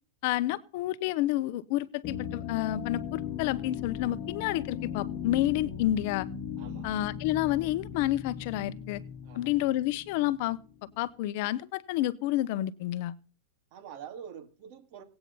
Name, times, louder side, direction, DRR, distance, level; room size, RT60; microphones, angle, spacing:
voice 1, 0.2-6.3 6.8-9.0 9.3-10.6 11.0-13.1, left 14 dB, 50° left, 0.7 m, -29 dB
sound 1, 2.0-10.7, left 8 dB, 35° left, 1.4 m, -38 dB
voice 2, 6.6-6.9 9.2-9.5 13.7-15.0, right 8 dB, 45° right, 2.4 m, -46 dB
18.0 x 8.9 x 5.5 m
supercardioid pair, 160°, 0 cm